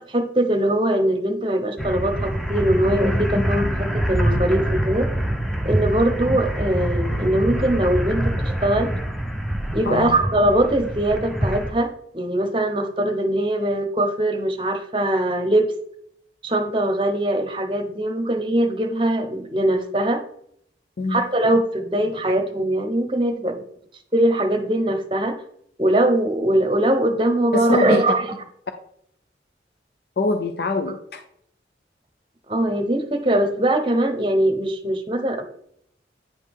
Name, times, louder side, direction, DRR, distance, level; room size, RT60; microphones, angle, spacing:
voice 1, 0.1-5.1 5.6-8.9 9.7-15.7 16.4-20.2 21.1-23.6 24.1-25.4 25.8-28.2 32.5-35.4, right 1 dB, 25° right, 6 dB, 0.9 m, -21 dB
sound 1, 1.8-11.7, equal, ahead, 0.7 m, -25 dB
voice 2, 27.5-28.0 30.2-31.2, left 2 dB, 60° left, 7 dB, 0.5 m, -24 dB
9.4 x 4.9 x 3.6 m, 0.68 s
head